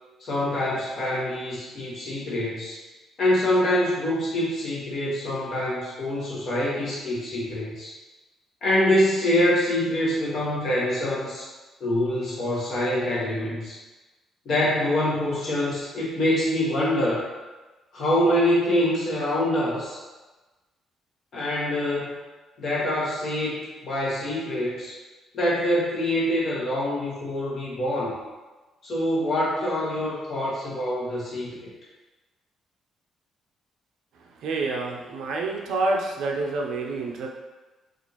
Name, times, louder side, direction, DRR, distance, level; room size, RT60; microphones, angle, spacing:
voice 1, 0.2-2.8 3.2-7.9 8.6-11.5 11.8-13.8 14.4-17.3 17.9-20.0 21.3-22.2 22.6-25.0 25.3-28.2 28.8-31.7, left 1 dB, 40° left, -6 dB, 1.1 m, -25 dB
voice 2, 34.4-37.3, right 3 dB, 65° right, 1 dB, 0.5 m, -27 dB
4.3 x 2.5 x 2.9 m, 1.2 s
cardioid pair, 180°, 0 cm